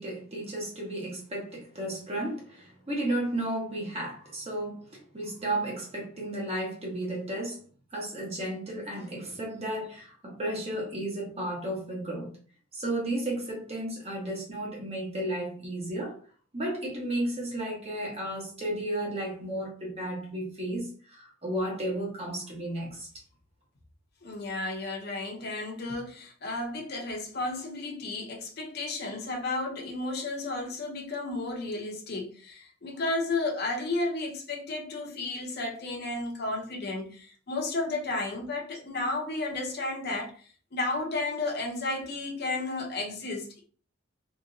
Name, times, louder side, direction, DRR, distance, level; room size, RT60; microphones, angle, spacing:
voice 1, 0.0-7.6 7.9-12.3 12.7-16.2 16.5-23.1, right 1 dB, 30° right, 1.1 m, -33 dB
voice 2, 24.2-40.4 40.7-43.6, left 2 dB, 50° left, 0.7 m, -33 dB
2.9 x 2.9 x 2.6 m
head